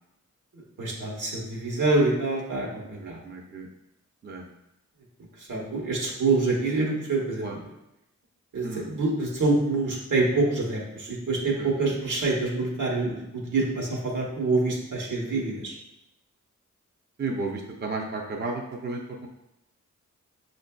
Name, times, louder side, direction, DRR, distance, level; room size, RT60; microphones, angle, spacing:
voice 1, 0.5-3.2 5.4-7.6 8.5-15.7, right 3 dB, 75° right, -3 dB, 1.1 m, -26 dB
voice 2, 3.0-3.7 4.2-4.4 7.4-7.6 8.6-8.9 11.6-11.9 17.2-19.3, right 3 dB, 35° right, 0 dB, 0.5 m, -33 dB
5.3 x 2.5 x 2.2 m, 0.88 s
cardioid pair, 55°, 31 cm